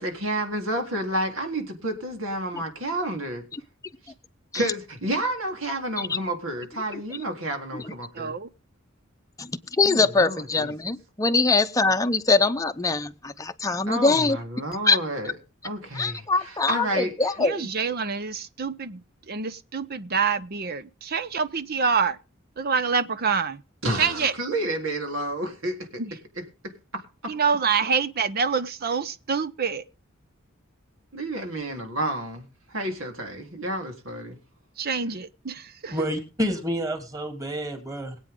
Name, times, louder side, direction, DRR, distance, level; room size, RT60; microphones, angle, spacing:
voice 1, 0.0-3.4 4.5-8.4 9.8-10.7 13.9-15.4 15.6-17.1 23.8-25.7 27.2-27.3 31.1-34.4, right 1 dB, 75° right, 3.7 m, -30 dB
voice 2, 8.1-8.5 17.4-19.0 19.3-22.2 22.6-23.6 24.0-24.3 26.0-26.1 27.3-29.8 34.8-36.0, right 5 dB, 50° right, 0.7 m, -26 dB
voice 3, 9.8-14.4 14.9-15.0 15.9-17.7, left 3 dB, 15° left, 0.7 m, -23 dB
voice 4, 35.9-38.1, equal, 20° right, 3.1 m, -29 dB
23.0 x 8.5 x 3.8 m
head